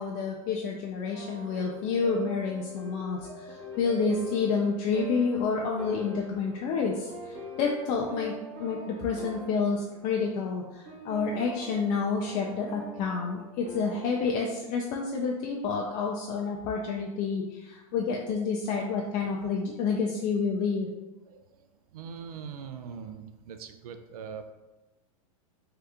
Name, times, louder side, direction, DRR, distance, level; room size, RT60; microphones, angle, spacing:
voice 1, 0.0-20.9, left 5 dB, 40° left, -1 dB, 0.4 m, -29 dB
sound 1, 1.1-14.4, equal, 30° right, 0.9 m, -44 dB
voice 2, 21.3-24.5, right 6 dB, 90° right, 7 dB, 0.4 m, -42 dB
2.8 x 2.4 x 3.4 m, 1.1 s
supercardioid pair, 130°, 18 cm